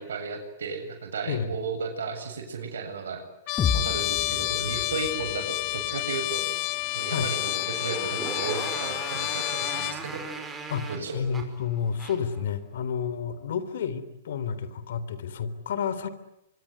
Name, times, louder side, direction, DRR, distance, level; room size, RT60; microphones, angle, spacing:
voice 1, 0.0-3.2 3.5-6.4 6.9-10.2 10.9-11.2, right 4 dB, 80° right, 5 dB, 7.7 m, -34 dB
Trumpet, 3.5-10.0, left 22 dB, 40° left, 1.0 m, -30 dB
sound 1, 3.6-7.5, left 6 dB, 20° left, 2.3 m, -33 dB
Motorcycle, 6.1-12.4, right 3 dB, 10° right, 5.5 m, -39 dB
voice 2, 10.7-16.1, left 7 dB, 70° left, 14 dB, 3.6 m, -30 dB
25.0 x 24.0 x 9.8 m, 0.82 s
hypercardioid pair, 130°, 0 cm